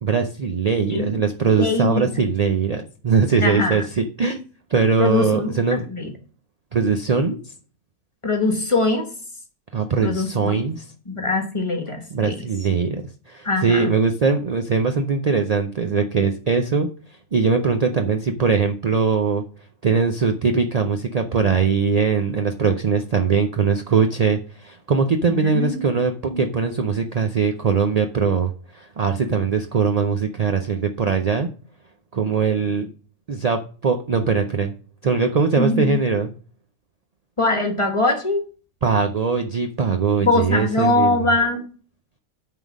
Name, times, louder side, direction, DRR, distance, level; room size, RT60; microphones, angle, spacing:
voice 1, 0.0-4.4 4.7-5.9 6.7-7.4 9.7-10.8 12.1-13.0 13.3-16.9 17.3-19.4 19.8-31.5 32.1-32.9 33.3-34.7 35.0-36.3 38.8-41.3, right 5 dB, 60° right, 5 dB, 0.4 m, -21 dB
voice 2, 1.6-2.1 3.4-3.8 5.0-6.1 8.2-9.1 10.0-10.6 11.1-12.5 13.4-13.9 25.3-25.9 26.3-26.5 35.6-36.0 37.4-38.4 40.2-41.6, left 2 dB, 25° left, 5 dB, 1.2 m, -22 dB
9.0 x 3.8 x 6.1 m, 0.41 s
omnidirectional pair, 1.5 m